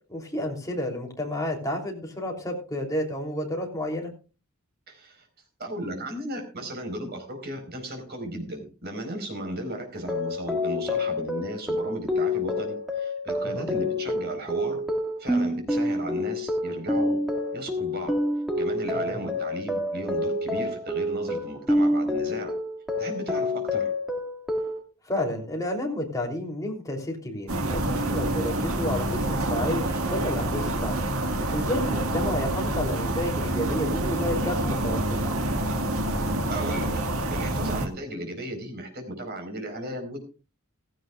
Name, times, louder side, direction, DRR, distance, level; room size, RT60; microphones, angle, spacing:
voice 1, 0.1-4.1 13.5-13.7 18.9-19.2 25.0-31.0 31.5-35.2, left 1 dB, 15° left, 0 dB, 3.3 m, -31 dB
voice 2, 4.9-5.3 5.6-14.8 15.2-17.2 17.5-18.1 18.6-22.5 23.0-23.9 36.0-36.9 37.3-40.3, right 1 dB, 50° right, 4 dB, 4.5 m, -35 dB
sound 1, 10.0-24.8, left 1 dB, ahead, 1.9 m, -28 dB
sound 2, 27.5-37.9, right 1 dB, 70° right, 1.8 m, -27 dB
16.0 x 15.5 x 2.4 m, 0.33 s
head